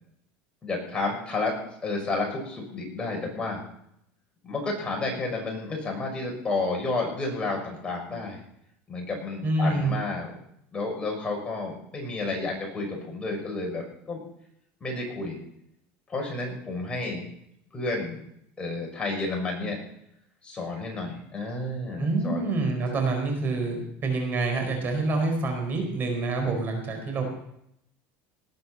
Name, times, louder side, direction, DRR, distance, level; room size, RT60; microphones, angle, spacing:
voice 1, 0.6-1.5 1.8-3.6 4.4-8.4 8.9-10.3 10.7-14.2 14.8-15.4 16.1-17.2 17.7-18.2 18.6-19.8 20.4-22.5, left 3 dB, 15° left, 0 dB, 6.3 m, -31 dB
voice 2, 9.4-10.0 22.0-27.2, right 3 dB, 35° right, 3 dB, 4.6 m, -27 dB
19.0 x 10.5 x 5.5 m, 0.74 s
supercardioid pair, 130°, 6 cm